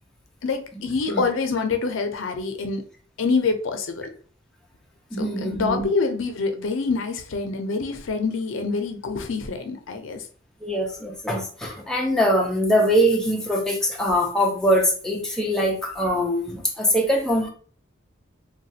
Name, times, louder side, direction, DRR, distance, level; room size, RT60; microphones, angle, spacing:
voice 1, 0.4-2.8 3.2-4.1 5.2-10.2, left 4 dB, 80° left, 6 dB, 0.5 m, -26 dB
voice 2, 5.1-5.9 10.6-17.5, equal, 5° left, -1 dB, 0.5 m, -22 dB
3.1 x 2.3 x 2.7 m, 0.43 s
head